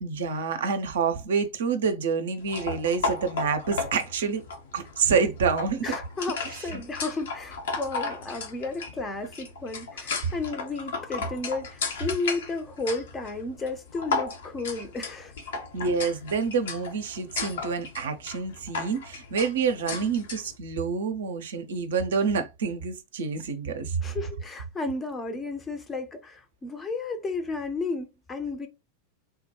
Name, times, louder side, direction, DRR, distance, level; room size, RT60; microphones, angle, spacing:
voice 1, 0.0-4.4 4.7-5.9 6.7-6.8 15.7-24.0, right 5 dB, 60° right, 0.5 m, -27 dB
sound 1, 2.4-20.5, left 4 dB, 60° left, 0.7 m, -35 dB
voice 2, 5.8-15.3 24.0-28.7, left 3 dB, 20° left, 0.5 m, -33 dB
3.5 x 2.1 x 2.8 m
figure-of-eight pair, 90°, 0 cm